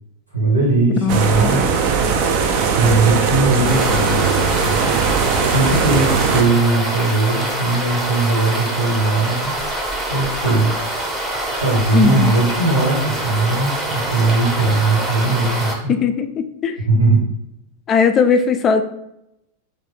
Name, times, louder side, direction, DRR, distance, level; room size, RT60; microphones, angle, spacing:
voice 1, 0.3-1.7 2.7-4.8 5.4-9.6 10.1-10.7 11.5-16.0 16.8-17.2, right 3 dB, 75° right, -5 dB, 1.2 m, -19 dB
voice 2, 1.0-1.7 11.9-12.4 15.9-16.8 17.9-18.8, left 5 dB, 25° left, 8 dB, 0.3 m, -18 dB
sound 1, 1.1-6.4, right 6 dB, 45° right, 0.4 m, -19 dB
sound 2, 3.7-15.7, right 1 dB, 15° right, 0.8 m, -25 dB
3.1 x 2.1 x 3.5 m, 0.83 s
figure-of-eight pair, 90°, 0 cm